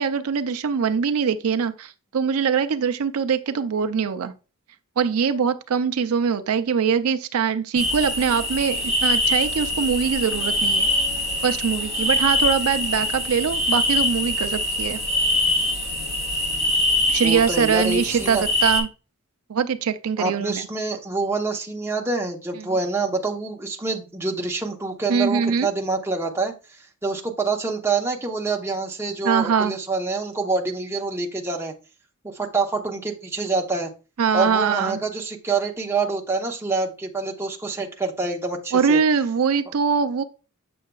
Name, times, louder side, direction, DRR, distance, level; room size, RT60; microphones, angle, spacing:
voice 1, 0.0-4.3 5.0-10.9 11.4-15.0 17.1-18.9 19.5-20.6 22.6-22.7 25.1-25.7 29.2-29.8 34.2-35.0 38.7-40.2, right 6 dB, 70° right, 0.5 m, -22 dB
sound 1, 7.8-18.8, left 1 dB, 50° left, 4.0 m, -23 dB
voice 2, 17.2-18.4 20.2-26.5 27.0-31.7 32.2-33.9 34.3-39.0, right 3 dB, 10° right, 0.8 m, -26 dB
7.7 x 6.5 x 2.3 m
head